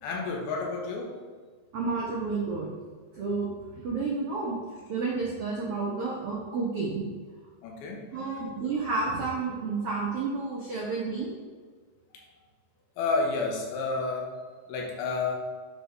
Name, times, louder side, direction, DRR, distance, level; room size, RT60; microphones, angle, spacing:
voice 1, 0.0-1.2 7.6-8.4 13.0-14.3 14.7-15.4, left 3 dB, 85° left, -1 dB, 3.0 m, -30 dB
voice 2, 1.7-2.7 3.1-3.5 3.8-4.5 4.9-7.0 8.1-11.3, right 4 dB, 80° right, -4 dB, 1.3 m, -30 dB
9.4 x 4.7 x 3.4 m, 1.5 s
omnidirectional pair, 4.3 m